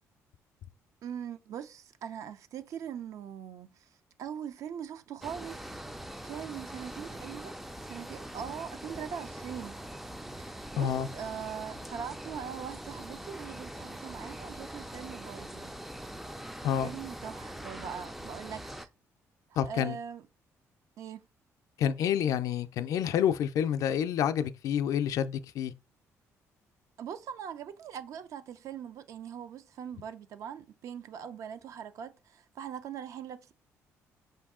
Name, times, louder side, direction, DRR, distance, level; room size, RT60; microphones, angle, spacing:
voice 1, 1.0-5.6 6.2-7.5 7.8-9.8 10.4-15.7 16.8-18.9 19.6-20.3 21.0-21.2 27.0-33.5, right 8 dB, 65° right, 0.5 m, -41 dB
sound 1, 5.2-18.9, right 1 dB, 5° right, 0.3 m, -43 dB
voice 2, 10.8-11.1 16.6-16.9 19.6-19.9 21.8-25.7, left 9 dB, 70° left, 0.4 m, -28 dB
5.3 x 2.6 x 3.6 m
cardioid pair, 115°, 6 cm